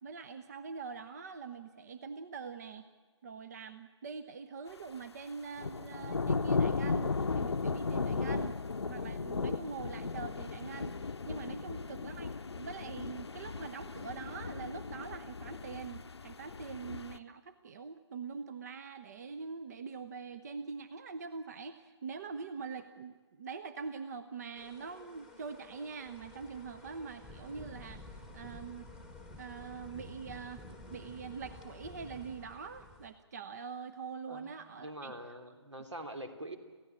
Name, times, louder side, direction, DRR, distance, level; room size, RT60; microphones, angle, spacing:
voice 1, 0.0-2.9 3.2-28.9 29.4-35.1, right 5 dB, 35° right, 12 dB, 0.9 m, -44 dB
sound 1, 5.6-17.2, left 4 dB, 65° left, 0.8 m, -36 dB
sound 2, 24.6-33.1, left 2 dB, 5° right, 1.4 m, -51 dB
voice 2, 34.8-36.6, right 1 dB, 75° right, 6 dB, 3.0 m, -44 dB
27.5 x 16.0 x 8.8 m, 1.4 s
figure-of-eight pair, 145°, 15 cm